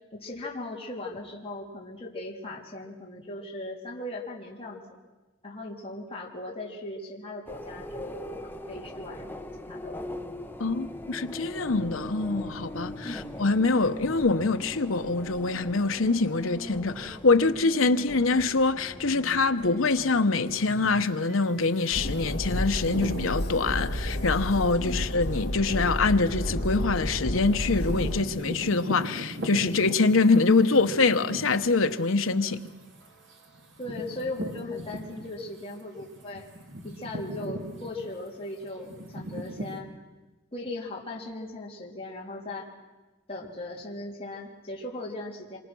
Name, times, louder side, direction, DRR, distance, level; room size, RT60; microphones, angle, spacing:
voice 1, 0.1-5.0 5.4-8.4 8.7-9.3 9.7-10.0 13.0-13.2 24.8-25.0 33.8-36.5 36.8-39.9 40.5-42.7 43.3-45.6, left 2 dB, 30° left, 3.6 m, -38 dB
sound 1, 7.5-21.0, left 1 dB, 10° left, 1.2 m, -41 dB
voice 2, 10.6-32.6, left 3 dB, 80° left, 1.0 m, -24 dB
sound 2, 20.5-35.6 36.0-39.8, equal, 65° right, 3.1 m, -40 dB
Train, 21.9-28.2, left 1 dB, 55° left, 1.8 m, -31 dB
26.5 x 25.0 x 6.2 m
head